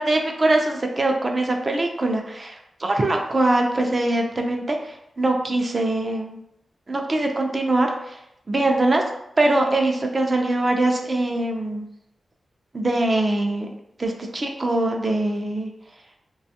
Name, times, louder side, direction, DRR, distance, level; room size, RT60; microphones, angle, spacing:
voice 1, 0.0-6.4 6.9-8.2 8.5-9.0 9.4-11.9 12.7-13.7 14.0-15.7, right 2 dB, 35° right, 2 dB, 0.4 m, -22 dB
2.5 x 2.2 x 2.7 m, 0.78 s
wide cardioid pair, 110°, 0 cm